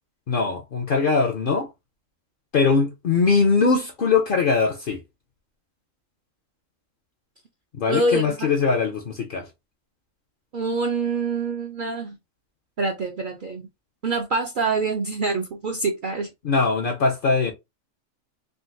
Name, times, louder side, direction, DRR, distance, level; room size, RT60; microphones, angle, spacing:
voice 1, 0.3-1.7 2.5-5.0 7.8-9.5 16.4-17.5, left 4 dB, 60° left, 0.6 m, -21 dB
voice 2, 7.9-8.5 10.5-12.2 12.8-13.7 14.0-16.3, right 3 dB, 60° right, 0.5 m, -25 dB
3.7 x 2.2 x 2.5 m
omnidirectional pair, 1.4 m